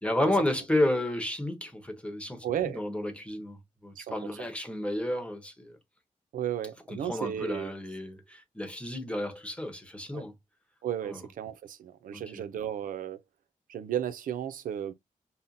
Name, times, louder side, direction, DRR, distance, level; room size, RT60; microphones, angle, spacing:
voice 1, 0.0-2.4 2.7-5.8 6.9-10.3 11.1-11.2 12.1-12.4, left 1 dB, 10° left, 1.0 m, -31 dB
voice 2, 2.4-2.8 4.0-4.2 6.3-7.8 10.1-10.2 10.8-13.2 13.7-14.9, right 10 dB, 90° right, 0.4 m, -34 dB
5.5 x 2.1 x 2.5 m
cardioid pair, 95°, 14 cm